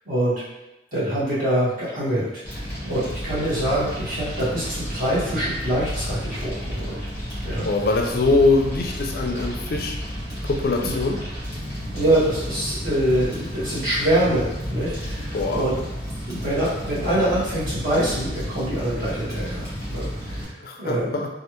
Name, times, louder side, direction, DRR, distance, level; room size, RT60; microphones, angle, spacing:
voice 1, 0.9-7.0 7.4-7.6 10.8-10.9 11.9-15.7 16.3-21.1, right 1 dB, 45° right, -10 dB, 1.5 m, -24 dB
Fire, 2.4-20.4, equal, 15° right, 1.2 m, -32 dB
voice 2, 7.6-10.0 10.5-11.2 15.3-15.6 20.6-21.3, left 3 dB, 50° left, 2 dB, 0.3 m, -22 dB
3.2 x 2.4 x 2.9 m, 0.96 s
head